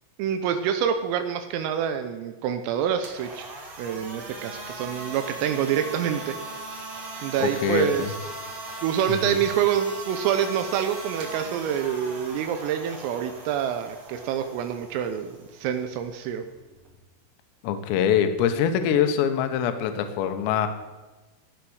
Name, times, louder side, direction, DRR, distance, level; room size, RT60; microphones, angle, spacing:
voice 1, 0.2-3.5 3.8-6.4 7.2-8.2 8.8-16.4, right 9 dB, 85° right, 7 dB, 3.4 m, -26 dB
sound 1, 3.0-16.9, right 2 dB, 45° right, 2.5 m, -39 dB
voice 2, 7.4-8.1 9.1-9.4 17.6-20.7, left 8 dB, 70° left, 8 dB, 2.9 m, -24 dB
15.5 x 9.3 x 6.4 m, 1.2 s
omnidirectional pair, 5.9 m